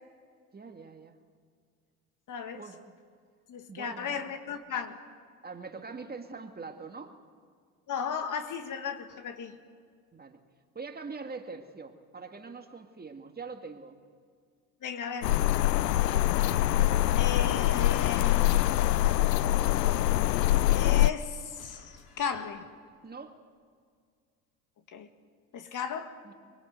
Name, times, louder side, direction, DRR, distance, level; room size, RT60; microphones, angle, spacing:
voice 1, 0.5-1.2 2.5-2.9 3.7-4.2 5.4-7.1 10.1-10.4 10.7-14.0 23.0-23.4 26.2-26.3, right 4 dB, 20° right, 5 dB, 2.1 m, -43 dB
voice 2, 2.3-2.6 3.5-5.0 7.9-9.6 14.8-15.4 17.1-18.5 20.7-22.7 24.9-25.1 25.5-26.2, left 6 dB, 40° left, 8 dB, 2.0 m, -35 dB
sound 1, 15.2-21.1, left 14 dB, 85° left, 0.6 m, -24 dB
sound 2, 16.2-22.4, left 4 dB, 60° left, 4.9 m, -53 dB
24.0 x 24.0 x 7.9 m, 2.1 s
hypercardioid pair, 70°, 47 cm